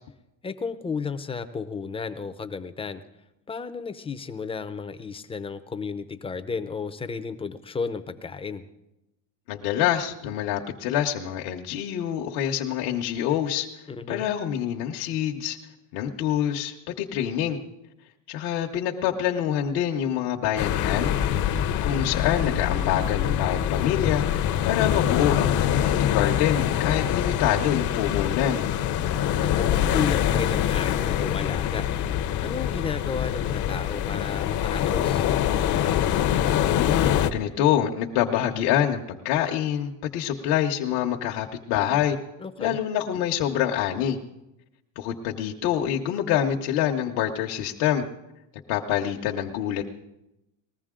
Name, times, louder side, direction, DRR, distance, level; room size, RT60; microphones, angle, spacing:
voice 1, 0.4-3.0 3.5-8.6 13.9-14.3 29.4-31.9 32.4-35.3 42.4-42.8, left 5 dB, 15° left, 9 dB, 0.6 m, -33 dB
voice 2, 9.5-13.7 14.1-15.6 15.9-17.6 18.3-21.1 21.8-28.6 36.7-42.2 42.6-44.2 45.0-48.0 48.7-49.8, left 10 dB, 65° left, 0 dB, 1.1 m, -26 dB
sound 1, 20.6-37.3, left 10 dB, 45° left, 0.8 m, -24 dB
20.0 x 14.5 x 3.7 m, 0.91 s
cardioid pair, 135°, 43 cm